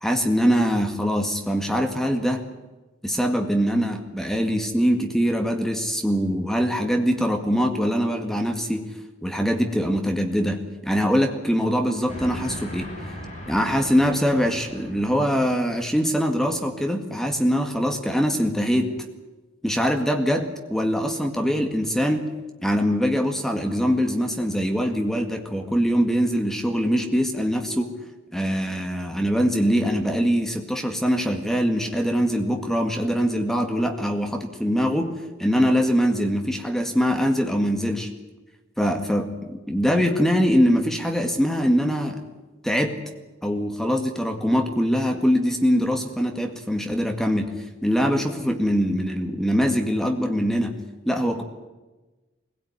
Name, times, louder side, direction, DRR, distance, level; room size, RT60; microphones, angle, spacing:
voice 1, 0.0-2.5 3.0-8.9 9.2-12.9 13.5-19.0 19.6-22.3 22.6-27.9 28.3-38.1 38.8-42.2 42.6-42.9 43.4-47.5 47.8-50.7 51.1-51.4, equal, ahead, 4 dB, 1.9 m, -23 dB
Train, 12.1-16.0, equal, 35° left, 7.5 m, -38 dB
23.0 x 17.0 x 9.7 m, 1.1 s
head